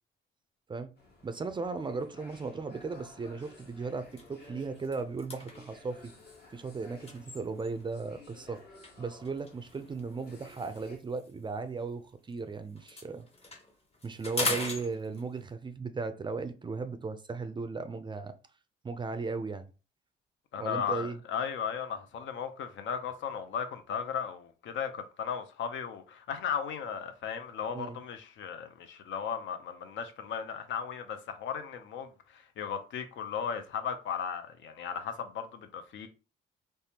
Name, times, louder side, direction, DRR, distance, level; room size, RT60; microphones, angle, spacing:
sound 1, 1.0-11.0, left 2 dB, 55° left, 1.1 m, -55 dB
voice 1, 1.2-6.1 6.5-8.6 9.0-13.3 14.0-18.3 18.8-19.7 20.6-21.2 27.7-28.0, right 4 dB, 25° right, 0.4 m, -36 dB
sound 2, 2.9-3.1 3.6-3.7 4.0-8.0 8.8-12.4 12.7-15.5, left 2 dB, 30° left, 0.8 m, -40 dB
voice 2, 20.5-36.1, left 7 dB, 70° left, 0.5 m, -36 dB
3.3 x 2.2 x 2.8 m
cardioid pair, 90°, 20 cm